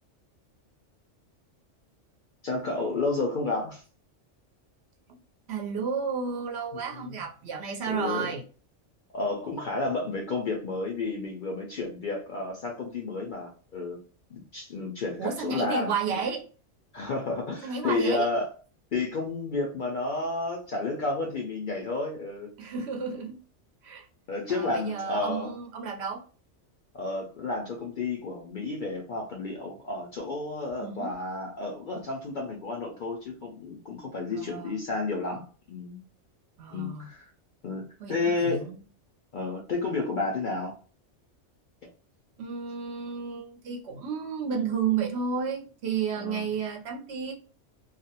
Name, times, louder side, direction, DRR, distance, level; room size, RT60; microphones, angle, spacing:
voice 1, 2.4-3.8 6.7-7.2 7.9-8.3 9.1-14.0 14.3-16.2 16.9-18.5 18.9-22.5 24.3-25.5 26.9-36.0 36.7-37.3 37.6-38.7 39.3-40.7 46.2-46.5, left 3 dB, 60° left, 0 dB, 0.5 m, -31 dB
voice 2, 5.5-8.4 15.2-16.5 17.6-18.3 22.6-23.4 23.8-24.1 24.5-26.2 30.8-31.1 34.3-34.7 36.6-37.1 38.0-38.8 42.4-47.3, right 6 dB, 65° right, 1 dB, 0.8 m, -32 dB
2.4 x 2.0 x 2.7 m, 0.39 s
omnidirectional pair, 1.3 m